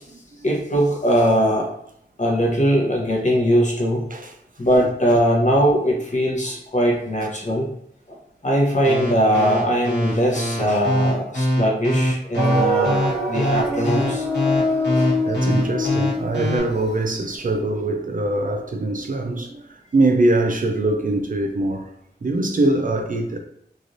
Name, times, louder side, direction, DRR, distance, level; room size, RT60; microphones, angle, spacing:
voice 1, 0.4-1.7 2.2-4.1 4.6-7.7 8.1-8.2 8.4-14.3 14.9-15.1, equal, 45° left, 0.8 m, -20 dB
sound 1, 8.8-16.6, left 1 dB, 75° left, 1.1 m, -22 dB
sound 2, 12.3-17.2, equal, 75° right, 1.0 m, -24 dB
voice 2, 15.2-21.9 22.2-23.4, right 2 dB, 50° right, 0.4 m, -22 dB
3.1 x 2.5 x 2.6 m
wide cardioid pair, 75°, 18 cm